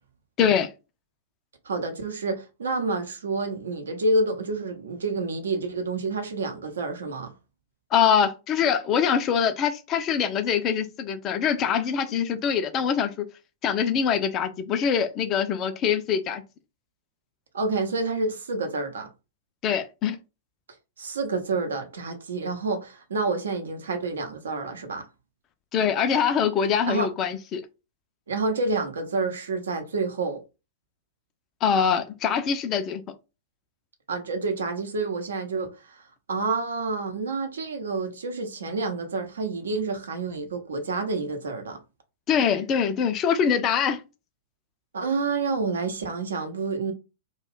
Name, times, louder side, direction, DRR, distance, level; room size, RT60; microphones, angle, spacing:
voice 1, 0.4-0.7 7.9-13.1 13.6-16.4 19.6-20.2 25.7-27.6 31.6-33.0 42.3-44.0, left 7 dB, 30° left, 0.4 m, -23 dB
voice 2, 1.6-7.3 17.5-19.1 21.0-25.0 26.9-27.1 28.3-30.4 34.1-36.0 36.3-41.8 44.9-46.9, right 3 dB, 65° right, 0.7 m, -28 dB
2.4 x 2.3 x 3.5 m
figure-of-eight pair, 100°, 0 cm